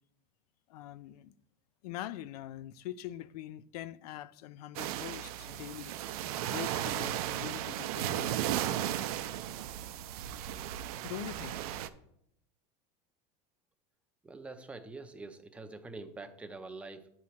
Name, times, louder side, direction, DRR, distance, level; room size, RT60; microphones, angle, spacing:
voice 1, 0.7-1.3 1.8-6.1 6.4-8.5 11.0-11.6, left 13 dB, 85° left, 0.4 m, -43 dB
sound 1, 4.8-11.9, right 12 dB, 75° right, 0.5 m, -35 dB
voice 2, 14.2-17.1, right 3 dB, 5° right, 0.5 m, -45 dB
8.6 x 3.1 x 5.7 m
supercardioid pair, 150°, 19 cm